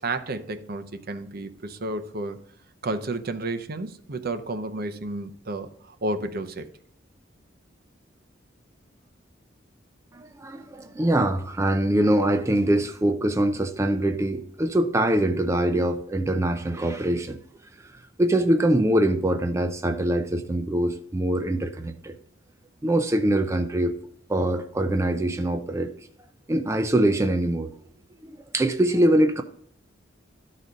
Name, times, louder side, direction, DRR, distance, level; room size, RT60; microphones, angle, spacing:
voice 1, 0.0-2.4 2.8-6.7, right 2 dB, 55° right, 0.7 m, -31 dB
voice 2, 10.1-17.4 18.2-22.2 22.8-23.9 24.3-25.9 26.5-27.7 28.2-29.4, right 1 dB, 15° right, 0.4 m, -23 dB
12.0 x 4.2 x 5.0 m
head